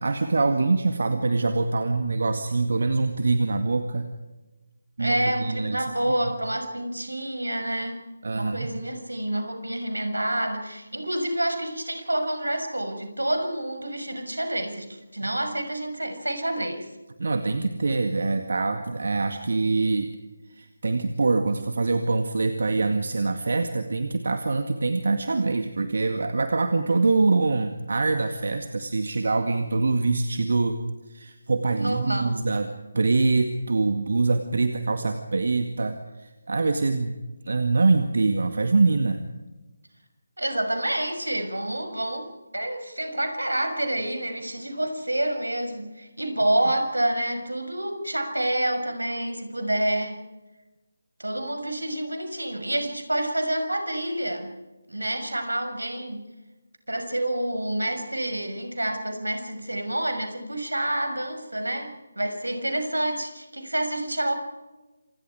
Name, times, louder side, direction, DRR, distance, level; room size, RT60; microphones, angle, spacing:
voice 1, 0.0-4.1 5.0-5.9 8.2-8.7 17.2-20.1 20.5-30.8 31.1-37.2 37.4-39.2, right 3 dB, 55° right, 7 dB, 2.0 m, -24 dB
voice 2, 5.0-8.1 8.3-16.9 31.8-32.4 40.4-50.2 51.2-54.5 54.9-56.2 56.9-64.3, right 1 dB, 75° right, 6 dB, 6.3 m, -28 dB
28.0 x 28.0 x 4.9 m, 1.1 s
figure-of-eight pair, 155°, 0 cm